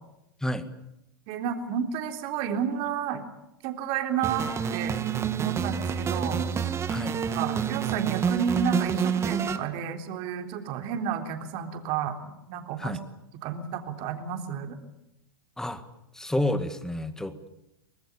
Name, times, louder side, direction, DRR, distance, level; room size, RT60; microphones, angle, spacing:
voice 1, 1.3-3.2 3.6-5.0 5.4-6.4 7.3-12.2 12.5-13.0 13.4-14.8, right 7 dB, 45° right, 5 dB, 3.7 m, -31 dB
sound 1, 4.2-9.6, right 7 dB, 20° right, 2.0 m, -28 dB
voice 2, 16.1-17.5, left 1 dB, 5° left, 11 dB, 2.0 m, -30 dB
25.0 x 19.5 x 8.8 m, 0.86 s
hypercardioid pair, 105°, 12 cm